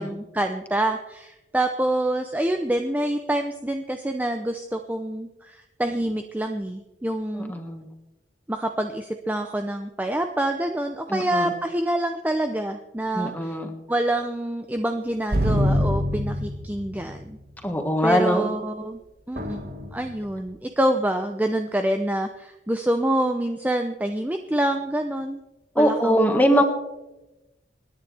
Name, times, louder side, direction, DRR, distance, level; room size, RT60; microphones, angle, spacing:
voice 1, 0.0-7.5 8.5-13.5 13.9-17.4 18.0-19.0 19.3-19.6 19.9-25.4 25.8-26.6, right 1 dB, 10° right, 6 dB, 0.5 m, -26 dB
voice 2, 7.5-7.8 11.1-11.5 13.1-13.7 17.6-18.5 25.7-26.6, equal, 10° left, 4 dB, 1.6 m, -21 dB
sound 1, 15.3-17.1 19.4-20.3, equal, 55° right, 1.7 m, -24 dB
27.0 x 10.0 x 3.4 m, 0.99 s
head